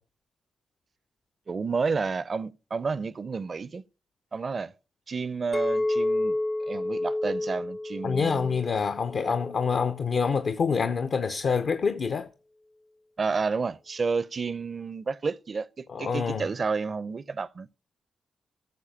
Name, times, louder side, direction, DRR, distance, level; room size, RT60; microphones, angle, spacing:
voice 1, 1.5-3.8 4.3-4.7 5.1-6.4 6.7-8.6 9.2-9.3 13.2-17.7, right 4 dB, 50° right, 0.5 m, -30 dB
Chink clink, 5.5-9.8 10.3-10.7, left 2 dB, 30° left, 0.5 m, -30 dB
voice 2, 8.0-12.3 15.9-16.5, left 5 dB, 60° left, 0.8 m, -26 dB
13.5 x 6.7 x 5.7 m
supercardioid pair, 40°, 0 cm